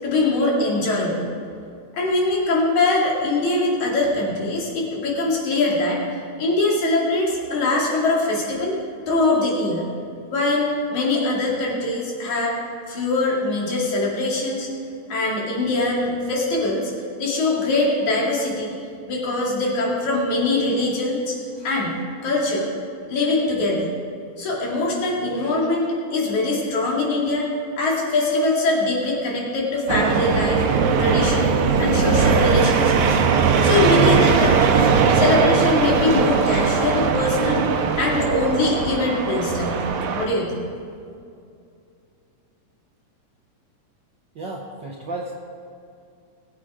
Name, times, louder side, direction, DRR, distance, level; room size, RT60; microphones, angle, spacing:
voice 1, 0.0-1.3 1.9-6.0 6.4-8.8 9.1-9.9 10.3-12.6 12.9-14.7 15.1-16.9 17.2-18.7 19.1-21.4 21.6-22.7 23.1-23.9 24.4-27.5 27.8-30.6 31.0-31.5 31.8-33.2 33.6-34.9 35.1-37.7 38.0-40.7, left 2 dB, 75° left, -3 dB, 3.8 m, -22 dB
sound 1, 29.9-40.3, right 6 dB, 80° right, 2.4 m, -19 dB
voice 2, 44.3-45.3, right 2 dB, 60° right, -2 dB, 1.2 m, -32 dB
21.0 x 8.1 x 4.9 m, 2.5 s
omnidirectional pair, 3.4 m